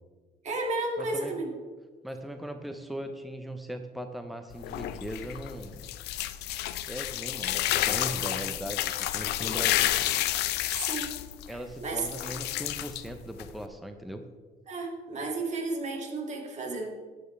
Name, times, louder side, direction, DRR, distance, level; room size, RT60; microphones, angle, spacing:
voice 1, 0.4-1.5 10.7-11.2 11.5-12.1 14.7-16.9, right 2 dB, 45° right, 1 dB, 2.2 m, -33 dB
voice 2, 1.0-1.3 2.0-5.9 6.9-9.9 11.5-14.2, right 1 dB, ahead, 6 dB, 0.8 m, -39 dB
sound 1, 4.5-13.7, left 14 dB, 80° left, 0.6 m, -30 dB
12.0 x 9.4 x 3.3 m, 1.4 s
cardioid pair, 110°, 17 cm